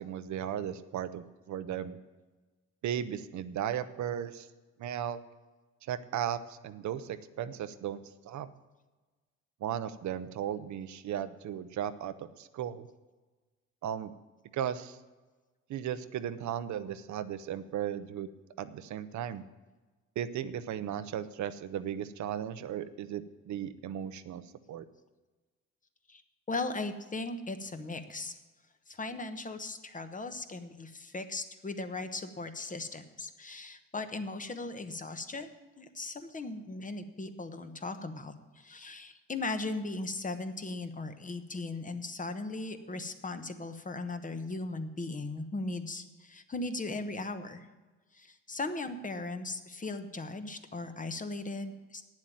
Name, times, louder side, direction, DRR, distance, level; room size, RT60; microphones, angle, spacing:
voice 1, 0.0-2.0 2.8-4.5 4.8-5.2 5.8-8.5 9.6-12.9 13.8-14.1 14.5-15.0 15.7-18.3 18.6-19.4 20.2-24.4 24.7-24.9, right 10 dB, 70° right, 12 dB, 0.7 m, -36 dB
voice 2, 26.5-28.4 28.9-35.5 35.8-47.7 48.1-52.0, left 2 dB, 25° left, 9 dB, 1.1 m, -38 dB
9.1 x 7.5 x 9.1 m, 1.3 s
cardioid pair, 90°, 30 cm